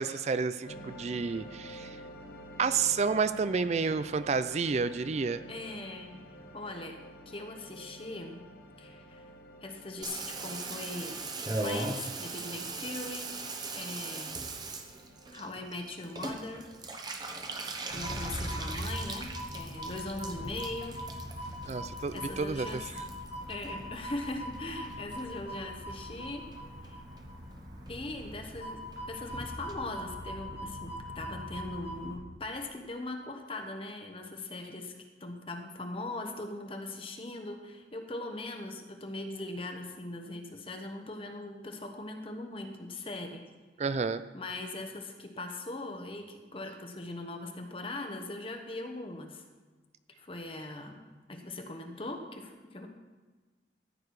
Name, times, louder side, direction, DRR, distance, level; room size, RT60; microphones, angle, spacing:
voice 1, 0.0-2.0 2.6-5.4 21.7-22.8 43.8-44.2, right 5 dB, 40° right, 13 dB, 0.4 m, -30 dB
sound 1, 0.6-20.5, equal, 55° left, 1.4 m, -51 dB
voice 2, 5.5-6.1 6.5-7.0 7.3-8.4 8.8-9.2 9.6-11.2 11.6-13.3 13.7-14.4 15.3-16.7 17.9-21.0 22.1-22.8 23.5-26.4 26.8-27.0 27.9-34.9 35.2-43.4 44.3-49.4 50.2-51.0 51.3-52.9, left 2 dB, 30° left, 4 dB, 1.1 m, -40 dB
Water tap faucet / Bathtub (filling or washing), 10.0-24.6 24.8-25.6 25.9-26.0 26.2-26.3 26.5-26.9 27.2-27.3 27.5-27.6 27.9-28.0 28.2-28.3 28.5-28.6 28.9-29.0 29.3-29.4 29.7-29.8, right 3 dB, 25° right, 0.9 m, -40 dB
sound 2, 17.9-32.1, equal, 70° right, 2.6 m, -41 dB
14.0 x 8.7 x 4.8 m, 1.3 s
head